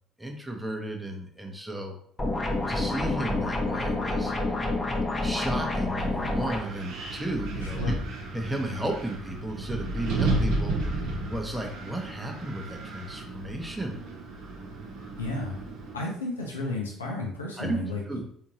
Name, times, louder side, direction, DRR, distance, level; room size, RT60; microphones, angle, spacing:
voice 1, 0.2-1.9 2.7-4.7 5.2-7.9 8.3-13.9 17.6-17.8 18.1-18.2, right 1 dB, 10° right, 2 dB, 0.8 m, -34 dB
sound 1, 2.2-6.6, left 2 dB, 25° left, 0.9 m, -28 dB
Wind, 6.0-15.9, right 2 dB, 65° right, 0.8 m, -33 dB
voice 2, 7.6-8.0 15.2-15.6 15.9-18.0, left 2 dB, 90° left, -1 dB, 0.6 m, -32 dB
3.6 x 2.7 x 3.0 m, 0.64 s
hypercardioid pair, 55°, 0 cm